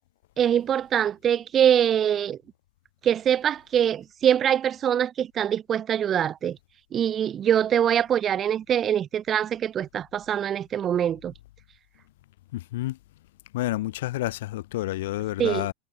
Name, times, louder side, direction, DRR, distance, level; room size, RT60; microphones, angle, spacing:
voice 1, 0.4-2.4 3.0-6.6 6.9-11.3 15.4-15.7, right 9 dB, 25° right, 1.1 m, -23 dB
voice 2, 12.5-13.0 13.5-15.7, left 16 dB, 85° left, 3.2 m, -29 dB
supercardioid pair, 155°, 0 cm